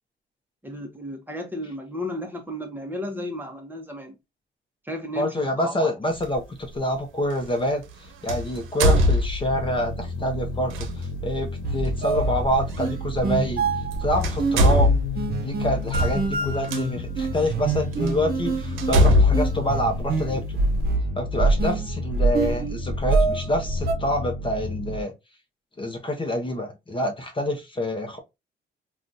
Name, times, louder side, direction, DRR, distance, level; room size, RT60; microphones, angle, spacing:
voice 1, 0.6-4.2 4.8-5.9, left 1 dB, 10° right, 0.9 m, -33 dB
voice 2, 5.2-7.8 8.2-13.6 14.0-14.9 15.4-20.6 21.2-25.1 25.8-28.2, left 1 dB, 25° left, 0.8 m, -27 dB
sound 1, 6.2-6.4 8.3-9.8 10.7-10.9 12.7-12.8 13.8-13.9 14.2-16.8 17.5-17.6 18.1-18.2 18.8-20.6, left 1 dB, 85° right, 0.7 m, -21 dB
sound 2, 9.5-25.0, left 2 dB, 80° left, 0.5 m, -33 dB
sound 3, 11.6-23.9, right 3 dB, 50° right, 0.8 m, -26 dB
3.7 x 2.4 x 2.6 m
cardioid pair, 90°, 20 cm